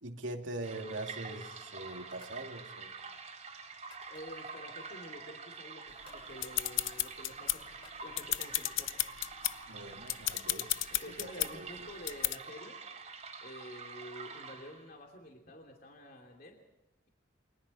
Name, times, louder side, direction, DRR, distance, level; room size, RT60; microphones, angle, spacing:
voice 1, 0.0-3.0 9.7-11.9, right 2 dB, 80° right, 3 dB, 2.6 m, -43 dB
sound 1, 0.6-15.0, right 5 dB, 35° right, 3.5 m, -47 dB
sound 2, 2.1-2.5 2.8-4.6 5.1-5.8 6.0-6.3 6.6-6.7 7.0-8.1 8.8-10.3, left 3 dB, 30° left, 7.2 m, -63 dB
voice 2, 4.1-7.6 8.0-9.0 11.0-12.8 13.4-16.6, left 1 dB, 50° left, 1 dB, 2.8 m, -49 dB
sound 3, 6.0-7.8 8.1-9.6 10.0-11.5 12.1-12.4, left 15 dB, 85° left, 0.7 m, -33 dB
29.0 x 25.0 x 4.2 m, 0.97 s
head